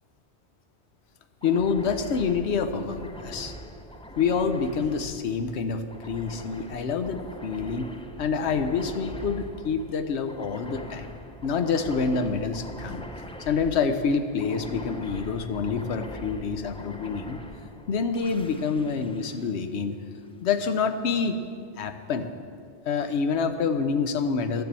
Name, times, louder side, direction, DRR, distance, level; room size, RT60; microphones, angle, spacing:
voice 1, 1.4-3.5 4.2-7.9 8.2-11.2 11.4-13.1 13.4-17.4 17.9-20.0 20.4-21.4 21.8-22.3 22.9-24.6, left 5 dB, 85° left, 9 dB, 1.0 m, -27 dB
sound 1, 1.4-20.3, equal, 10° left, 0.3 m, -42 dB
11.5 x 7.1 x 7.5 m, 2.3 s
omnidirectional pair, 1.1 m